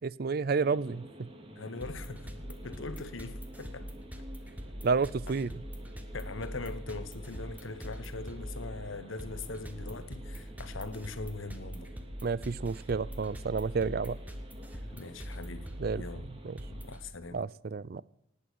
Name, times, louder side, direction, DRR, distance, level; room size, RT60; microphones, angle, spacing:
voice 1, 0.0-1.3 4.8-5.5 12.2-14.2 15.8-16.6 17.3-18.0, right 4 dB, 50° right, 0.4 m, -31 dB
sound 1, 0.6-17.0, equal, 30° right, 2.3 m, -51 dB
voice 2, 1.6-3.9 6.1-11.9 14.9-16.3 16.7-17.4, left 3 dB, 85° left, 1.3 m, -41 dB
sound 2, 1.8-17.0, equal, 10° right, 1.2 m, -43 dB
18.5 x 8.8 x 6.3 m
head